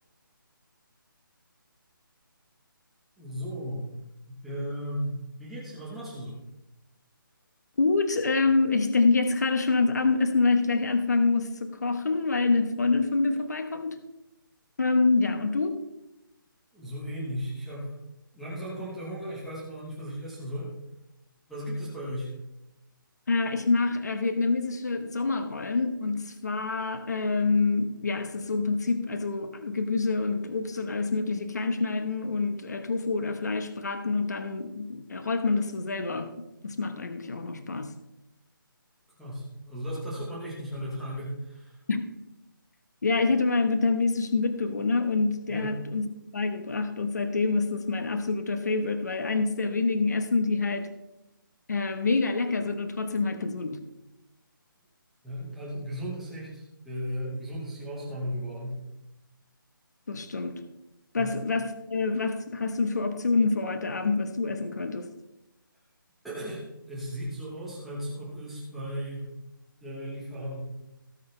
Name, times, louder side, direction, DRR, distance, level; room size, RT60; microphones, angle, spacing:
voice 1, 3.2-3.9 4.3-6.4 16.7-17.9 18.3-20.7 21.5-22.3 39.2-41.8 45.5-45.8 55.2-58.8 61.2-61.3 66.2-69.3 69.8-70.6, equal, ahead, 1.0 m, -36 dB
voice 2, 7.8-14.0 14.8-15.8 23.3-36.3 36.6-37.9 41.9-42.0 43.0-46.1 46.3-50.9 51.7-53.8 60.1-60.6 61.1-65.1, left 3 dB, 50° left, 1.1 m, -26 dB
18.0 x 6.4 x 3.3 m
hypercardioid pair, 180°, 12 cm